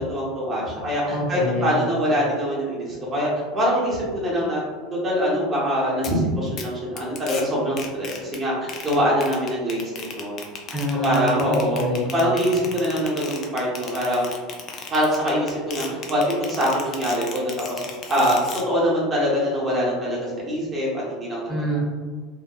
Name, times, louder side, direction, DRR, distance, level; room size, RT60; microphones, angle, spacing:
voice 1, 0.0-4.6 4.9-10.4 11.0-11.8 12.1-14.3 14.9-17.8 18.1-21.4, equal, 30° right, -5 dB, 0.7 m, -24 dB
voice 2, 1.1-1.8 10.7-12.1 21.5-21.8, equal, 15° left, -5 dB, 0.8 m, -26 dB
sound 1, 6.0-6.1 6.6-6.7 7.0-7.4 7.8-8.4 8.7-18.6, left 5 dB, 40° left, 0.3 m, -35 dB
2.8 x 2.0 x 2.3 m, 1.5 s
figure-of-eight pair, 75°, 0 cm